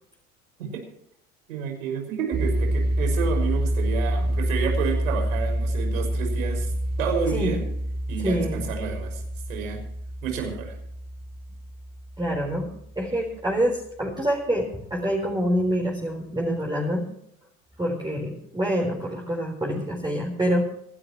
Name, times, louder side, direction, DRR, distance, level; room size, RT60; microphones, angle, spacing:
voice 1, 1.5-6.7 7.0-7.6 8.1-9.2 9.5-9.8 10.2-10.7, right 6 dB, 75° right, 3 dB, 6.1 m, -30 dB
sound 1, 2.3-13.2, right 1 dB, 25° right, 7.3 m, -27 dB
voice 2, 8.2-8.6 12.2-12.7 13.0-17.1 17.8-20.7, equal, 10° right, -2 dB, 4.3 m, -26 dB
27.0 x 12.0 x 3.1 m, 0.71 s
hypercardioid pair, 75°, 41 cm